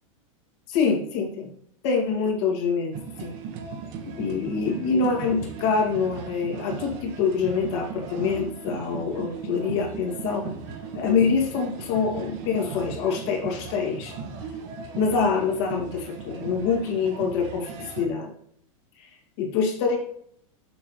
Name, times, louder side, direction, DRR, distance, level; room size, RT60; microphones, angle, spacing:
voice 1, 0.7-1.5 1.8-2.9 3.2-3.3 4.2-10.6 10.9-14.2 15.0-18.3 19.0-19.1 19.4-20.0, left 5 dB, 55° left, 0 dB, 2.5 m, -25 dB
sound 1, 2.9-18.1, right 5 dB, 45° right, 1.6 m, -37 dB
7.8 x 6.2 x 3.3 m, 0.67 s
supercardioid pair, 150°, 17 cm